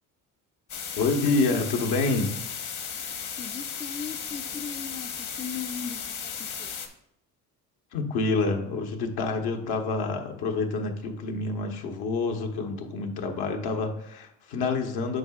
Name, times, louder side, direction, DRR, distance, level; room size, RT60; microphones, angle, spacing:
sound 1, 0.7-6.9, left 7 dB, 50° left, 1.2 m, -35 dB
voice 1, 1.0-2.3 7.9-15.2, left 3 dB, 70° left, 3 dB, 1.2 m, -27 dB
voice 2, 3.4-6.3 6.6-6.8, left 6 dB, 15° left, 9 dB, 0.3 m, -38 dB
7.8 x 5.7 x 2.4 m, 0.76 s
supercardioid pair, 80°, 39 cm